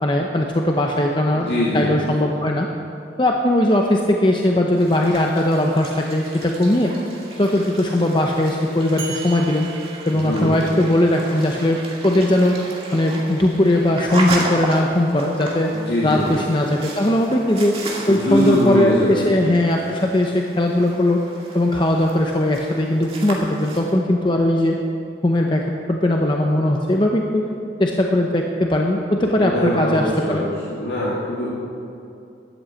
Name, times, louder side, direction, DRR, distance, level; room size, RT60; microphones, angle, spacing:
voice 1, 0.0-2.7 3.2-6.9 7.4-9.7 10.1-12.6 12.9-15.8 16.0-17.8 18.1-21.2 21.5-24.8 25.2-27.4 27.8-30.4, left 1 dB, 25° left, 1 dB, 0.8 m, -19 dB
voice 2, 1.3-1.9 2.2-2.3 10.2-10.6 15.7-16.4 18.1-19.6 29.4-31.5, equal, 60° left, -7 dB, 2.2 m, -22 dB
sound 1, 4.8-23.9, right 2 dB, 35° right, 2.3 m, -34 dB
sound 2, 9.0-11.0, right 8 dB, 55° right, 2.6 m, -37 dB
13.0 x 8.5 x 8.3 m, 2.6 s
head